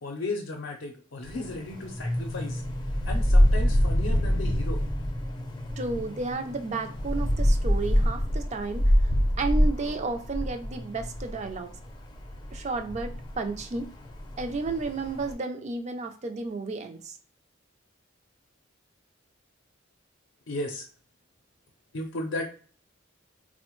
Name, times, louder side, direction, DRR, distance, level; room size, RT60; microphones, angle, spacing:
voice 1, 0.0-2.6 3.0-4.8 20.5-20.9 21.9-22.5, left 2 dB, 70° left, 1 dB, 0.5 m, -35 dB
sound 1, 1.2-15.3, equal, 25° left, 0.5 m, -26 dB
voice 2, 5.8-8.9 9.4-11.7 12.5-13.9 14.4-17.2, right 3 dB, 35° right, 7 dB, 0.4 m, -32 dB
4.1 x 2.1 x 3.0 m, 0.43 s
head